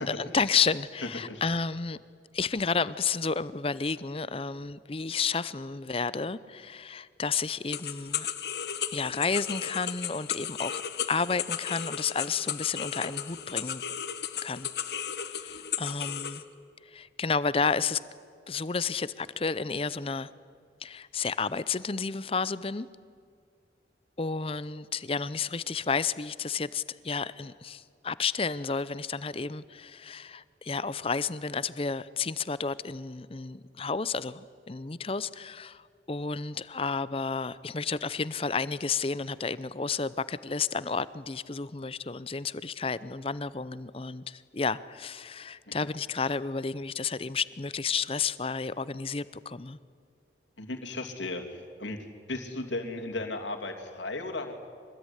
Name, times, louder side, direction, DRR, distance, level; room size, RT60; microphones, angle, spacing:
voice 1, 0.0-2.0 2.3-8.3 8.9-10.8 11.1-13.8 14.4-14.7 15.0-16.4 16.8-18.0 18.5-20.3 20.8-22.9 24.2-49.8, left 5 dB, 30° left, 17 dB, 0.6 m, -31 dB
sound 1, 7.7-16.4, left 9 dB, 60° left, 1.3 m, -35 dB
voice 2, 50.6-54.5, left 2 dB, 85° left, 3 dB, 2.7 m, -36 dB
24.5 x 20.0 x 9.9 m, 2.2 s
head